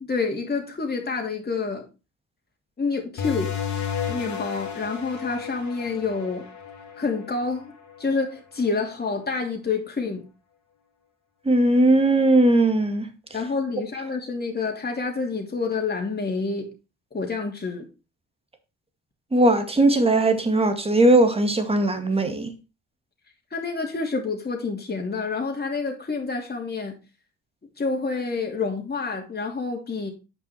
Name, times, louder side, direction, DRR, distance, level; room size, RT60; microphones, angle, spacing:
voice 1, 0.0-1.9 2.8-3.5 4.1-6.4 7.0-7.7 8.0-10.3 13.3-16.7 17.1-17.8 23.5-26.9 27.8-30.1, left 4 dB, 25° left, 3.0 m, -28 dB
sound 1, 3.2-8.4, left 7 dB, 50° left, 2.3 m, -33 dB
voice 2, 11.4-13.1 19.3-22.5, right 2 dB, 15° right, 2.1 m, -19 dB
8.5 x 6.2 x 4.5 m
hypercardioid pair, 55°, 36 cm